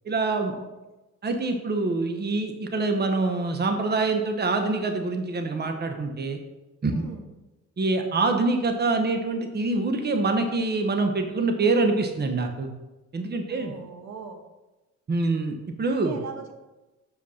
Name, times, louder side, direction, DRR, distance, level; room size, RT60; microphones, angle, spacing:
voice 1, 0.0-0.5 1.2-6.4 6.8-7.0 7.8-12.7 13.1-13.7 15.1-16.2, right 3 dB, 35° right, 5 dB, 1.1 m, -25 dB
voice 2, 6.9-7.3 13.5-14.4 15.9-16.5, right 6 dB, 65° right, 5 dB, 1.2 m, -41 dB
7.9 x 5.2 x 5.6 m, 1.1 s
cardioid pair, 90°, 30 cm